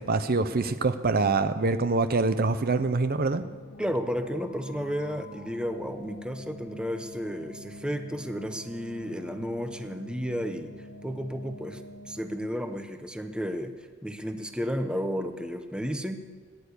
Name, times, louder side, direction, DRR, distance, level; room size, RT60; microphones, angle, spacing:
voice 1, 0.0-3.4, right 3 dB, 45° right, 11 dB, 0.6 m, -25 dB
sound 1, 3.4-12.6, left 1 dB, 65° left, 1.5 m, -46 dB
voice 2, 3.8-10.7 11.0-11.8 12.1-13.7 14.0-16.2, equal, 5° right, 7 dB, 0.9 m, -32 dB
16.0 x 10.5 x 8.3 m, 1.5 s
head